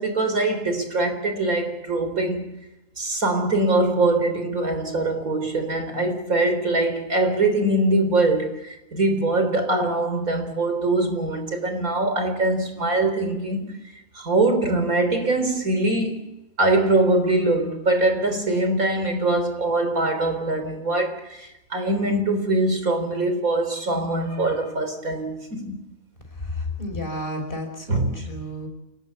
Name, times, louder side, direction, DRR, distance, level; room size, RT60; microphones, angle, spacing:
voice 1, 0.0-2.4 3.0-13.8 14.2-16.3 16.6-25.8 27.9-28.1, right 2 dB, 85° right, 4.2 m, -23 dB
voice 2, 26.3-28.7, left 1 dB, 40° left, 5.7 m, -32 dB
28.5 x 18.0 x 8.4 m
omnidirectional pair, 1.4 m